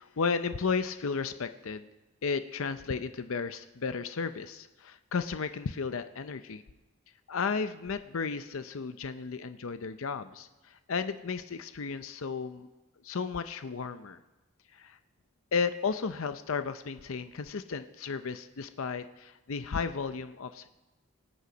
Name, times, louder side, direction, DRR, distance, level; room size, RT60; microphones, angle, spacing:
voice 1, 0.0-1.8 2.2-6.6 7.3-12.7 13.0-14.2 14.7-15.0 15.5-20.7, left 5 dB, 70° left, 11 dB, 0.6 m, -34 dB
24.0 x 8.4 x 5.2 m, 1.1 s
head